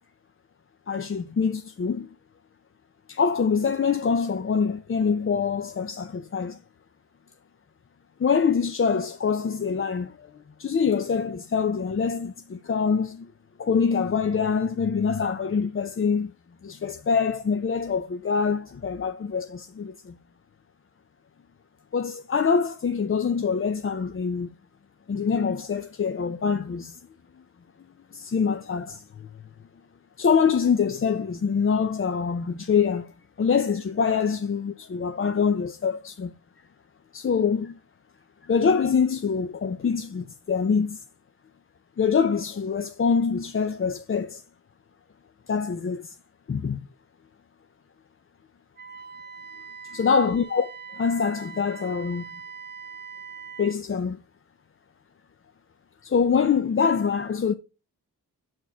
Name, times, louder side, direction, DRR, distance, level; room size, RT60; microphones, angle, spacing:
voice 1, 0.9-2.1 3.1-6.6 8.2-10.3 10.6-13.3 13.6-16.3 16.6-20.1 21.9-24.5 25.1-27.0 28.1-29.0 30.2-33.1 33.4-36.3 37.1-37.7 38.5-41.0 42.0-44.4 45.5-46.1 46.5-46.8 49.9-50.7 50.9-52.3 53.6-54.2 56.0-57.5, left 6 dB, 35° left, 0.5 m, -25 dB
Wind instrument woodwind instrument, 48.8-53.8, right 5 dB, 25° right, 0.4 m, -42 dB
7.1 x 4.4 x 4.4 m
cardioid pair, 45°, 40 cm